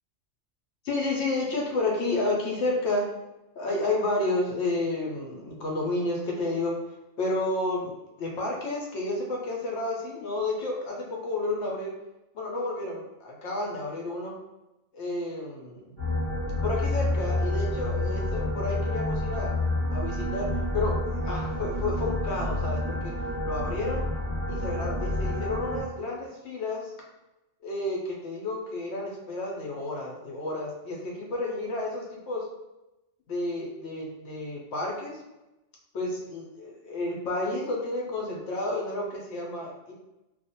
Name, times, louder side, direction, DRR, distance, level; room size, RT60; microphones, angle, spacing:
voice 1, 0.8-3.0 3.6-6.7 7.2-7.9 8.2-11.9 12.3-14.3 14.9-15.9 16.6-19.5 19.9-20.5 20.7-23.1 23.4-24.1 24.5-26.9 27.6-32.4 33.3-35.2 35.9-39.9, left 2 dB, 70° left, -2 dB, 0.8 m, -31 dB
sound 1, 16.0-25.8, left 1 dB, 20° left, 0.9 m, -29 dB
2.4 x 2.1 x 2.7 m, 0.97 s
omnidirectional pair, 1.2 m